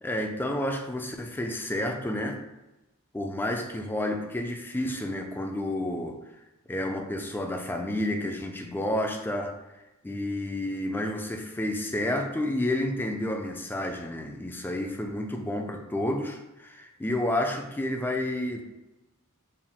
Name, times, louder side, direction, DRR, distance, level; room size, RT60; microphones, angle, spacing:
voice 1, 0.0-2.4 3.1-6.2 6.7-9.6 10.0-18.6, left 1 dB, 10° left, 4 dB, 0.3 m, -30 dB
4.4 x 2.0 x 3.7 m, 0.99 s
head